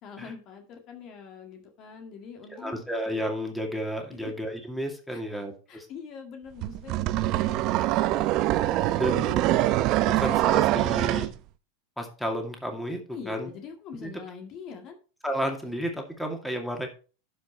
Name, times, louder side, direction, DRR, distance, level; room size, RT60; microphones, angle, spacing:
voice 1, 0.0-2.8 4.1-4.3 5.1-8.6 8.9-9.8 13.1-15.0, left 6 dB, 45° left, 4 dB, 1.9 m, -44 dB
voice 2, 2.6-5.9 9.0-9.3 10.0-11.3 12.0-13.5 14.0-14.1 15.2-16.9, equal, 5° left, 3 dB, 2.3 m, -32 dB
sound 1, 6.6-11.3, right 15 dB, 50° right, 0.7 m, -24 dB
11.5 x 5.4 x 4.4 m, 0.36 s
hypercardioid pair, 100°, 0 cm